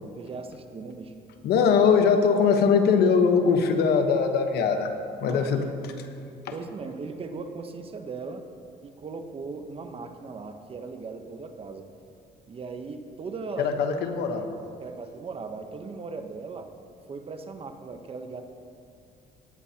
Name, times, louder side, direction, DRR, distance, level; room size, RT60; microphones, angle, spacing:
voice 1, 0.2-1.1 5.2-5.8 6.5-8.4 8.8-11.9 12.5-13.8 14.8-16.7 17.1-18.4, right 4 dB, 35° right, 7 dB, 0.9 m, -38 dB
voice 2, 1.4-4.9 5.2-5.7 13.6-14.5, left 6 dB, 75° left, 5 dB, 1.1 m, -21 dB
18.0 x 9.9 x 2.8 m, 2.4 s
cardioid pair, 110°, 17 cm